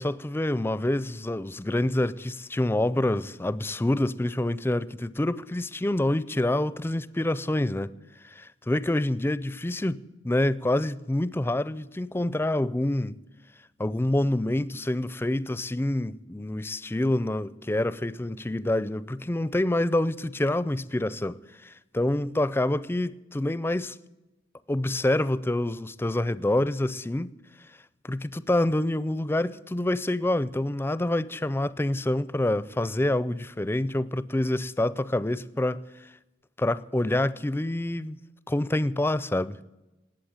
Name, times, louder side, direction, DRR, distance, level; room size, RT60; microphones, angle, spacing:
voice 1, 0.0-7.9 8.2-13.2 13.8-24.0 24.7-27.3 28.0-35.8 36.6-38.2 38.5-39.6, left 1 dB, 10° left, 0.4 m, -27 dB
19.5 x 8.3 x 8.7 m
head